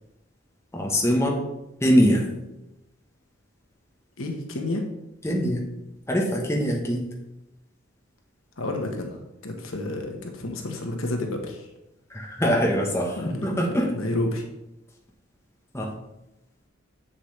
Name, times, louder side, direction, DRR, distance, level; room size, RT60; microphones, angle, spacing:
voice 1, 0.7-1.4 1.8-2.2 5.2-5.6 6.1-7.0 12.1-13.9 15.7-15.9, equal, 15° left, 0 dB, 1.1 m, -22 dB
voice 2, 4.2-4.8 8.6-11.7 13.2-14.4, left 2 dB, 80° left, 3 dB, 1.3 m, -30 dB
7.5 x 7.1 x 3.3 m, 0.91 s
head